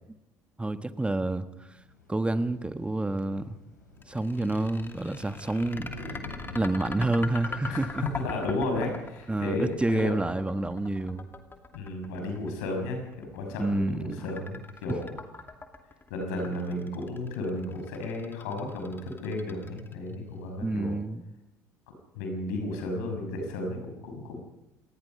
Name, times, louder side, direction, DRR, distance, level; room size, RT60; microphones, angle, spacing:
voice 1, 0.6-1.5 2.1-3.6 4.1-6.2 6.5-8.0 9.3-11.3 13.6-14.4 14.9-15.0 20.6-21.2, right 2 dB, 10° right, 10 dB, 1.5 m, -29 dB
sound 1, 1.7-11.1, left 2 dB, 90° left, 4.4 m, -48 dB
sound 2, 4.0-20.1, left 3 dB, 25° left, 2.6 m, -42 dB
voice 2, 7.7-10.1 11.7-15.1 16.1-21.0 22.1-24.4, left 2 dB, 70° left, 4 dB, 6.2 m, -33 dB
27.5 x 19.5 x 5.5 m, 0.93 s
figure-of-eight pair, 55°, 9 cm